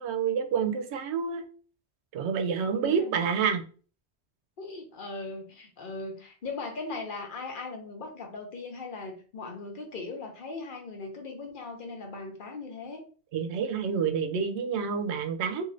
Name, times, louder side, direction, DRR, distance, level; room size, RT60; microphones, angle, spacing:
voice 1, 0.0-1.5 2.1-3.6 13.3-15.6, right 6 dB, 85° right, 0.9 m, -28 dB
voice 2, 2.6-3.2 4.6-13.0, left 3 dB, 55° left, 0.8 m, -39 dB
3.1 x 2.7 x 2.5 m
omnidirectional pair, 1.1 m